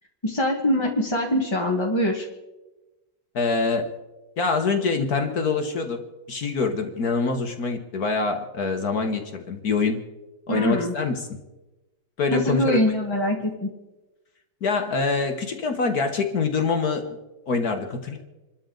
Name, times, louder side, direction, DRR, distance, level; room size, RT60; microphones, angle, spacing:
voice 1, 0.2-2.2 10.5-10.9 12.3-13.7, left 1 dB, 15° left, -2 dB, 1.2 m, -23 dB
voice 2, 3.3-3.9 4.4-6.0 6.3-10.0 10.5-11.2 12.2-12.8 14.6-17.1 17.5-18.2, left 4 dB, 55° left, 5 dB, 1.6 m, -25 dB
27.5 x 13.0 x 3.9 m, 1.1 s
omnidirectional pair, 2.1 m